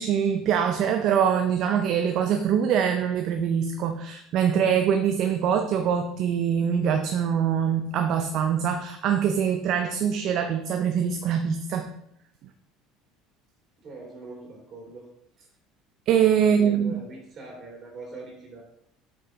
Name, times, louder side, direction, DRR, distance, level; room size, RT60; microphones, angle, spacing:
voice 1, 0.0-11.9 16.1-17.0, right 8 dB, 60° right, 6 dB, 0.7 m, -24 dB
voice 2, 13.8-15.1 15.4-15.5 16.4-18.6, right 3 dB, 40° right, -1 dB, 2.9 m, -42 dB
7.3 x 6.5 x 3.8 m, 0.76 s
hypercardioid pair, 75°, 0 cm